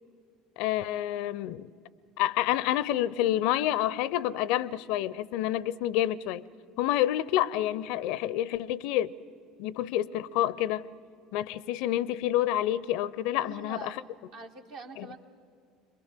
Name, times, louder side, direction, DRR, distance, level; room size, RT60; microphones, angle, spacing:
voice 1, 0.6-1.7 2.2-6.4 6.8-9.1 9.6-10.8 11.3-13.9 15.0-15.1, left 13 dB, 60° left, 0.5 m, -28 dB
voice 2, 13.4-14.0 14.3-15.2, right 4 dB, 60° right, 1.7 m, -44 dB
27.0 x 22.0 x 7.4 m
figure-of-eight pair, 65°, 0 cm